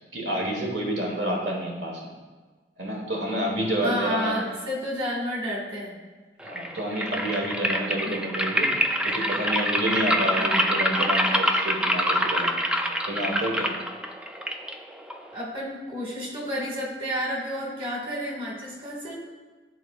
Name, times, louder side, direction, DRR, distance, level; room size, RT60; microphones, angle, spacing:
voice 1, 0.1-2.0 2.8-4.4 6.4-12.6 13.1-13.7, right 1 dB, 80° right, -1 dB, 1.3 m, -29 dB
voice 2, 3.8-6.0 8.0-8.2 10.4-10.6 15.3-19.1, equal, 30° right, -4 dB, 1.7 m, -31 dB
sound 1, 6.4-15.4, equal, 5° right, 0.3 m, -26 dB
12.0 x 4.0 x 2.3 m, 1.3 s
head